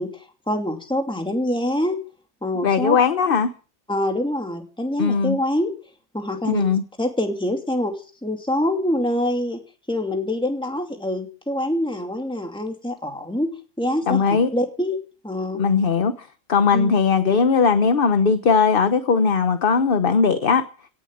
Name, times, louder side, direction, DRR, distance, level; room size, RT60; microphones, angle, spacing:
voice 1, 0.0-2.0 2.4-3.0 3.9-5.7 6.1-6.7 7.0-8.0 8.2-9.6 9.9-15.6 16.7-16.9, left 1 dB, 5° left, 2.7 m, -25 dB
voice 2, 2.6-3.5 5.0-5.4 6.4-6.8 14.1-14.5 15.6-20.6, left 5 dB, 50° left, 1.1 m, -19 dB
17.0 x 7.3 x 9.9 m
omnidirectional pair, 1.2 m